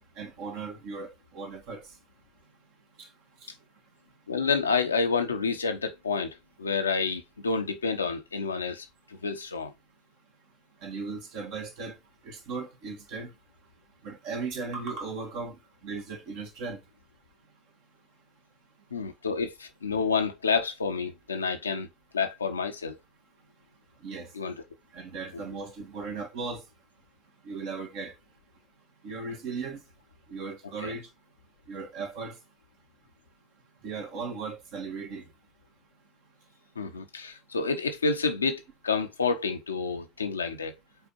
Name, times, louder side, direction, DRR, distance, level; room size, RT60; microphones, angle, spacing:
voice 1, 0.2-1.9 3.0-3.1 10.8-11.9 12.2-13.3 14.0-15.6 15.8-16.8 24.0-24.3 24.9-26.6 27.4-28.1 29.0-29.8 30.3-31.1 31.7-32.4 33.8-35.3, right 4 dB, 65° right, 2.0 m, -37 dB
voice 2, 4.3-9.7 18.9-21.9 22.1-23.0 24.3-24.5 25.3-25.4 30.8-30.9 36.8-40.7, left 4 dB, 90° left, 0.7 m, -29 dB
5.4 x 4.3 x 4.3 m
figure-of-eight pair, 65°, 0 cm